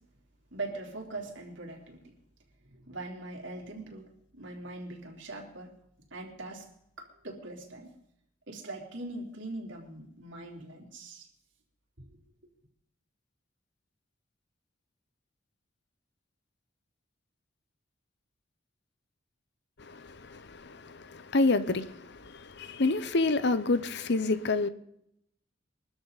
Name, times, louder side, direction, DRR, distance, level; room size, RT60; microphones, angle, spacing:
voice 1, 0.5-2.1 2.7-5.7 6.1-6.7 7.0-7.9 8.5-11.3, right 2 dB, 75° right, 3.6 m, -41 dB
voice 2, 19.8-24.7, left 3 dB, 60° left, 0.9 m, -28 dB
23.5 x 13.5 x 4.1 m
head